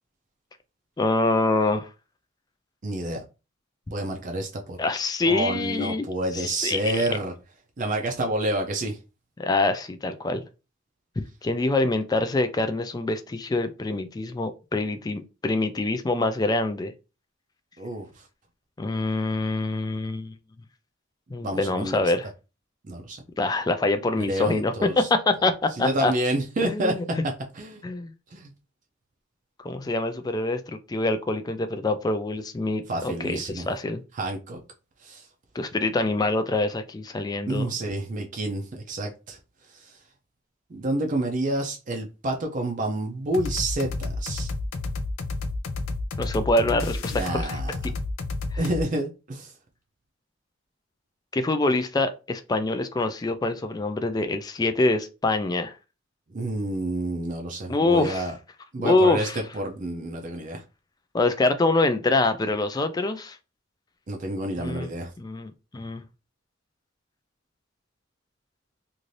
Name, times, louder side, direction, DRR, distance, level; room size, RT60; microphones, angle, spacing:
voice 1, 1.0-1.9 4.8-6.0 6.3-7.0 9.4-10.4 11.2-16.9 18.8-20.3 21.3-22.3 23.4-26.1 26.6-27.0 27.8-28.1 29.6-34.0 35.6-37.7 46.2-47.6 48.5-48.6 51.3-55.7 57.7-58.2 58.8-59.4 61.1-63.4 64.6-64.9 65.2-66.0, left 2 dB, 20° left, 0.3 m, -25 dB
voice 2, 2.8-3.2 3.9-4.8 5.2-7.3 7.8-9.0 17.8-18.3 21.4-22.0 22.8-23.2 24.2-25.1 25.8-27.0 27.5-27.8 28.3-28.5 32.9-33.7 34.2-34.6 35.0-35.3 37.5-39.4 39.7-40.0 40.7-44.5 47.1-47.8 48.6-49.5 56.3-58.3 58.7-60.6 64.1-65.1, right 1 dB, 40° right, 0.4 m, -29 dB
sound 1, 43.3-48.8, left 2 dB, 85° left, 0.5 m, -30 dB
2.6 x 2.5 x 3.1 m
head